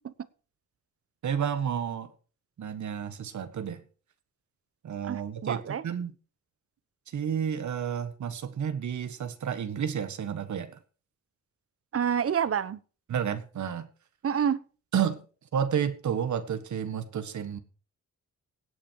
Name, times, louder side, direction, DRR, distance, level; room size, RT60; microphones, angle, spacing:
voice 1, 1.2-2.1 2.6-3.8 4.8-6.1 7.1-10.8 13.1-13.9 14.9-15.2 15.5-17.6, right 8 dB, 70° right, 11 dB, 1.6 m, -31 dB
voice 2, 5.0-5.8 11.9-12.8 14.2-14.6, right 8 dB, 50° right, 17 dB, 0.9 m, -28 dB
17.0 x 8.6 x 4.7 m, 0.39 s
cardioid pair, 85°, 31 cm